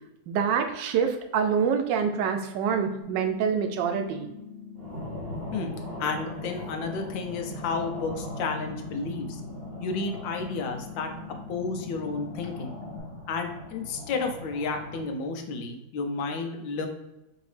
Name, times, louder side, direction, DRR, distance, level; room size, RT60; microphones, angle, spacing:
voice 1, 0.3-4.3, right 6 dB, 75° right, 5 dB, 1.2 m, -26 dB
sound 1, 3.0-13.0, left 7 dB, 60° left, 0.5 m, -44 dB
sound 2, 4.7-15.1, left 1 dB, 40° right, 0.9 m, -40 dB
voice 2, 6.0-9.4 9.8-11.1 11.5-12.7 13.3-16.9, left 4 dB, 75° left, 4 dB, 1.4 m, -31 dB
5.0 x 2.7 x 3.2 m, 0.94 s
omnidirectional pair, 2.1 m